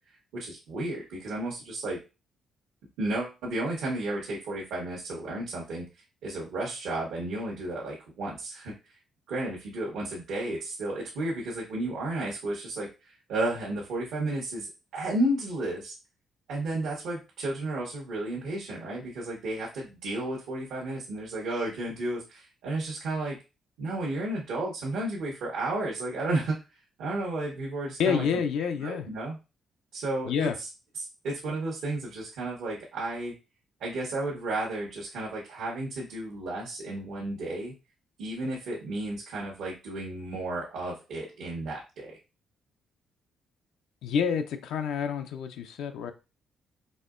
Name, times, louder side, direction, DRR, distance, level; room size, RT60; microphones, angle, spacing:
voice 1, 0.3-2.0 3.0-5.8 6.2-8.7 9.3-14.7 14.9-15.9 16.5-23.4 23.8-26.6 27.0-28.2 28.8-29.4 29.9-30.7 31.0-33.3 33.8-37.7 38.2-42.2, right 2 dB, 80° right, -4 dB, 1.1 m, -32 dB
voice 2, 28.0-29.1 30.3-30.5 44.0-46.1, left 7 dB, 85° left, 6 dB, 0.4 m, -28 dB
4.2 x 2.8 x 2.5 m, 0.29 s
cardioid pair, 90°, 0 cm